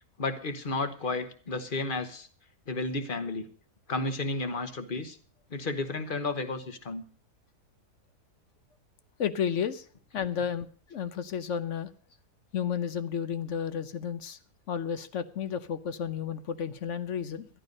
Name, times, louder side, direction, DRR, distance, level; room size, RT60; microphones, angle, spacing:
voice 1, 0.2-2.3 2.7-3.5 3.9-5.2 5.5-7.0, left 3 dB, 35° left, 9 dB, 1.2 m, -32 dB
voice 2, 9.2-9.9 10.1-11.9 12.5-14.4 14.7-17.5, left 8 dB, 55° left, 12 dB, 0.9 m, -32 dB
13.0 x 11.5 x 5.3 m, 0.43 s
omnidirectional pair, 1.7 m